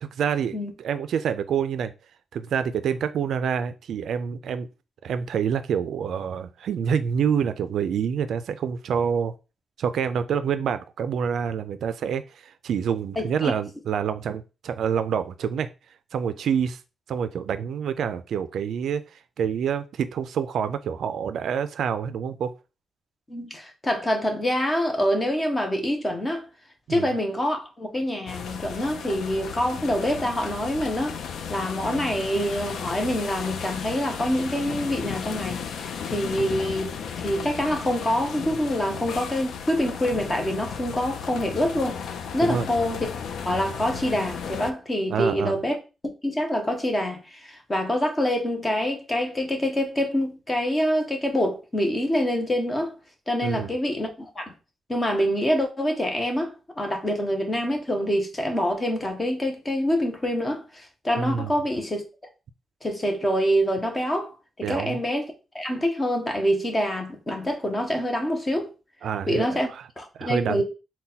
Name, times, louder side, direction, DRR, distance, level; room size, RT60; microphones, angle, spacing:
voice 1, 0.0-1.9 2.3-4.7 5.0-9.3 9.8-15.7 16.1-16.8 17.1-22.5 26.9-27.1 42.4-42.7 45.1-45.6 53.4-53.7 61.2-61.5 64.6-65.0 69.0-69.9 70.2-70.6, right 7 dB, 70° right, 0.3 m, -27 dB
voice 2, 13.2-13.5 23.3-26.5 26.9-31.2 31.5-36.9 37.2-42.0 42.3-43.1 43.5-45.8 46.2-52.9 53.3-54.5 54.9-62.0 62.8-64.3 64.6-65.3 65.5-68.7 69.3-69.7 70.0-70.6, equal, 15° left, 0.7 m, -26 dB
sound 1, 28.3-44.7, left 7 dB, 80° left, 0.4 m, -34 dB
4.0 x 2.2 x 3.9 m
wide cardioid pair, 175°, 0 cm